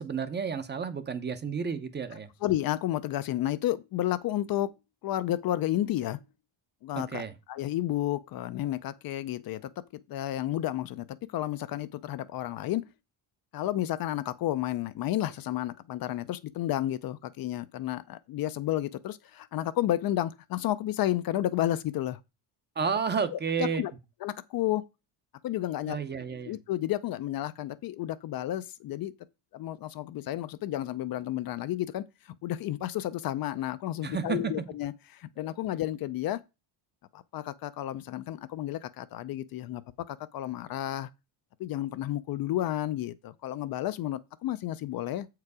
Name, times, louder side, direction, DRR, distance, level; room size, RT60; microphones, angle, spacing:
voice 1, 0.0-2.3 7.0-7.3 22.8-23.8 25.9-26.5 34.0-34.5 35.4-35.5, right 6 dB, 25° right, 0.6 m, -31 dB
voice 2, 2.4-4.7 5.0-6.2 6.8-12.8 13.5-22.2 23.3-23.9 24.2-24.8 25.4-26.0 26.5-29.1 29.5-36.4 37.1-39.8 40.1-41.1 41.6-45.3, left 13 dB, 50° left, 0.5 m, -31 dB
7.6 x 4.7 x 4.8 m
cardioid pair, 160°, 45 cm